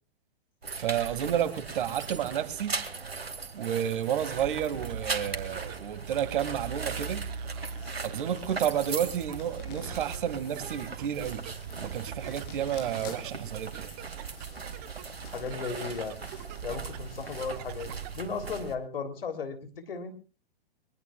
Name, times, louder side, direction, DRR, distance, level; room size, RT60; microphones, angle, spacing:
sound 1, 0.6-18.7, right 5 dB, 85° right, 2.3 m, -39 dB
voice 1, 0.8-2.8 3.5-7.2 8.0-11.4 11.8-13.9, right 10 dB, 60° right, 2.0 m, -31 dB
sound 2, 4.2-18.3, right 6 dB, 40° right, 0.9 m, -43 dB
sound 3, 6.1-17.9, left 6 dB, 40° left, 5.3 m, -52 dB
voice 2, 15.2-16.2 16.6-20.1, left 5 dB, 70° left, 3.2 m, -36 dB
23.0 x 21.5 x 2.3 m
figure-of-eight pair, 115°, 30 cm